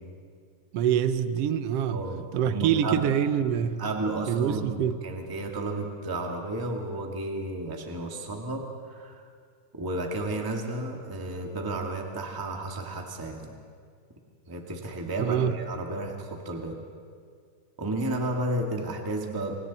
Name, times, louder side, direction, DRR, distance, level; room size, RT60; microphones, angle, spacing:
voice 1, 0.7-2.0 2.3-3.8 4.2-5.0 15.2-15.6, right 9 dB, 70° right, 11 dB, 1.5 m, -25 dB
voice 2, 1.9-3.1 3.8-9.2 9.7-13.5 14.5-16.8 17.8-19.6, right 2 dB, 10° right, 1 dB, 1.4 m, -32 dB
29.5 x 25.0 x 4.2 m, 2.1 s
omnidirectional pair, 3.6 m